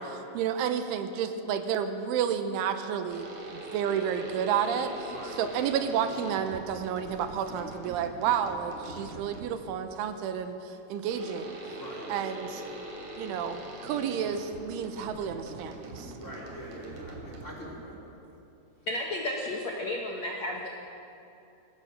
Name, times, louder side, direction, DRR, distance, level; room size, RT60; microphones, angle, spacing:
voice 1, 0.0-3.3 3.5-11.6 12.1-12.6 13.2-16.1, right 8 dB, 80° right, 8 dB, 3.3 m, -31 dB
sound 1, 3.1-9.7 11.1-17.8, right 1 dB, 45° right, 3.6 m, -43 dB
voice 2, 5.1-5.7 11.8-12.1 16.2-18.2, equal, 20° left, -3 dB, 2.9 m, -43 dB
voice 3, 18.9-20.7, left 1 dB, 80° left, 0 dB, 1.5 m, -32 dB
23.0 x 17.5 x 6.6 m, 2.8 s
omnidirectional pair, 5.7 m